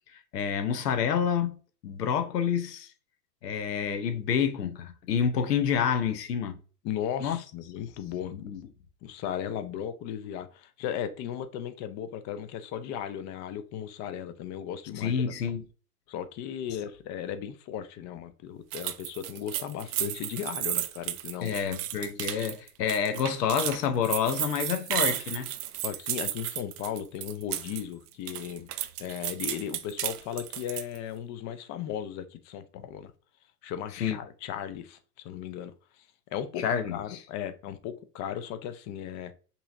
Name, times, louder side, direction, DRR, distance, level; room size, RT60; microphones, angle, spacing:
voice 1, 0.1-1.6 1.8-2.9 3.4-6.6 7.2-7.4 8.3-8.6 15.0-15.6 21.4-25.5 34.0-34.2 36.6-37.2, left 7 dB, 85° left, 0.7 m, -28 dB
voice 2, 6.8-8.4 9.0-15.3 16.1-21.6 25.8-28.7 29.0-33.1 33.6-36.1 36.3-36.6 36.9-39.3, left 9 dB, 35° left, 0.6 m, -36 dB
sound 1, 18.7-27.8 28.1-31.0, right 13 dB, 75° right, 0.6 m, -33 dB
5.5 x 2.9 x 2.5 m
hypercardioid pair, 100°, 47 cm